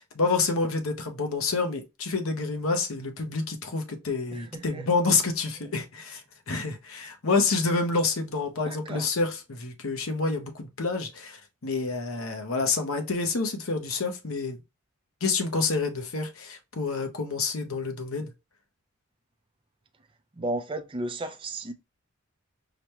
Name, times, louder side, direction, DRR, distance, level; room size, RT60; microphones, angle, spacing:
voice 1, 0.0-6.2 6.5-14.6 15.2-18.3, left 4 dB, 80° left, 0.8 m, -28 dB
voice 2, 4.3-4.9 8.6-9.1 20.4-21.7, right 2 dB, 25° right, 0.5 m, -34 dB
4.9 x 2.2 x 2.9 m
head